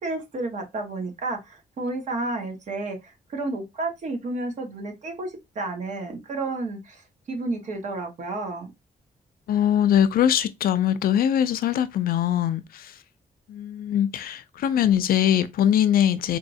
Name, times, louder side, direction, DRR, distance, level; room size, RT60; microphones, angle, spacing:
voice 1, 0.0-8.7, right 2 dB, 55° right, 1.2 m, -31 dB
voice 2, 9.5-13.0 13.5-16.4, left 10 dB, 90° left, 0.5 m, -22 dB
4.1 x 3.1 x 2.7 m
wide cardioid pair, 175°, 15 cm